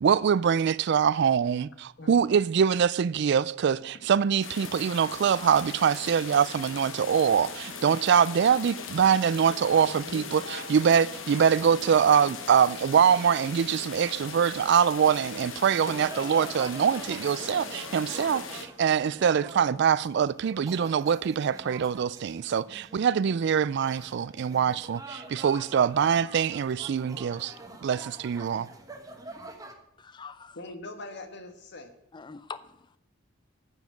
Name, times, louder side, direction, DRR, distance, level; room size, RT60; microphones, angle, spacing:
voice 1, 0.0-27.5 27.8-28.7, right 7 dB, 60° right, 0.3 m, -24 dB
sound 1, 4.4-18.7, left 5 dB, 85° left, 1.2 m, -40 dB
voice 2, 9.9-10.7 20.8-20.9 30.5-31.9, left 2 dB, 60° left, 1.4 m, -42 dB
sound 2, 15.9-29.7, right 2 dB, 20° right, 1.2 m, -45 dB
voice 3, 30.0-30.6 32.1-33.0, left 5 dB, 25° left, 0.5 m, -43 dB
9.4 x 7.2 x 7.4 m
head